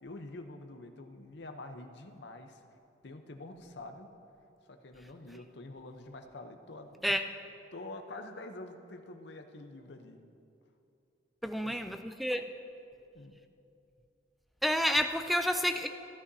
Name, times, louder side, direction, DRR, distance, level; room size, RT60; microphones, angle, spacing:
voice 1, 0.0-2.6 3.0-4.1 4.7-7.2 7.7-10.2 11.6-11.7 13.1-13.4, left 2 dB, 60° left, 5 dB, 0.7 m, -46 dB
voice 2, 11.4-12.5 14.6-15.9, equal, ahead, 7 dB, 0.3 m, -29 dB
16.0 x 11.0 x 2.7 m, 2.7 s
head